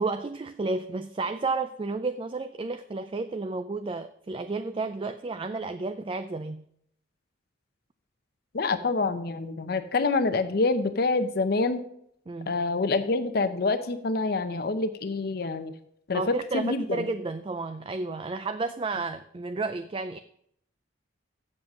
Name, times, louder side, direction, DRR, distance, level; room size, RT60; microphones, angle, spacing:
voice 1, 0.0-6.6 12.3-12.5 16.1-20.2, right 3 dB, 30° right, 10 dB, 0.4 m, -32 dB
voice 2, 8.5-11.8 12.5-15.7 16.1-17.0, left 3 dB, 55° left, 9 dB, 0.6 m, -26 dB
7.6 x 7.3 x 6.3 m, 0.69 s
head